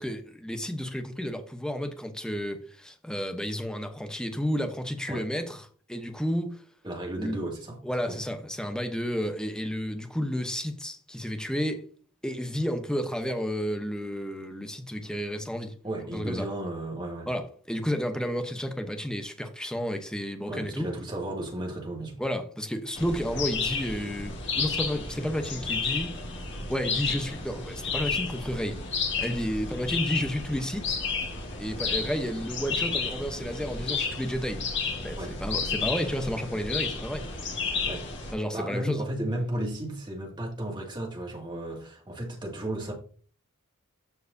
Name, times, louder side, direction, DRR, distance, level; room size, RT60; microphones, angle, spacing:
voice 1, 0.0-5.6 5.9-6.6 7.2-7.4 7.8-11.9 12.2-15.7 16.1-16.4 17.3-20.9 22.2-26.1 26.7-28.8 29.2-31.0 31.6-34.7 35.0-37.3 38.3-39.0, equal, 5° left, 0.8 m, -31 dB
voice 2, 6.8-7.8 8.1-8.2 15.8-17.3 20.5-22.2 35.2-35.4 37.8-38.0 38.5-42.9, right 1 dB, 20° right, 2.1 m, -34 dB
sound 1, 22.9-38.3, left 4 dB, 55° left, 1.8 m, -32 dB
13.5 x 4.7 x 2.7 m
head